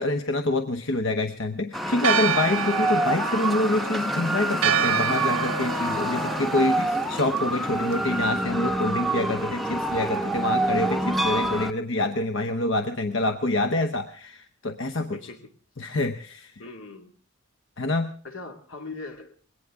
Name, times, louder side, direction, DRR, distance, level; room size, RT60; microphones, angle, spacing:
voice 1, 0.0-15.2 15.8-16.6 17.8-18.1, left 2 dB, 65° left, 8 dB, 0.9 m, -26 dB
sound 1, 1.7-11.7, right 1 dB, ahead, 0.7 m, -27 dB
Church bell, 2.0-8.3, right 8 dB, 90° right, 0.7 m, -29 dB
voice 2, 15.1-15.5 16.6-17.1 18.2-19.3, left 3 dB, 80° left, 4 dB, 2.2 m, -40 dB
21.5 x 18.0 x 3.6 m, 0.43 s
head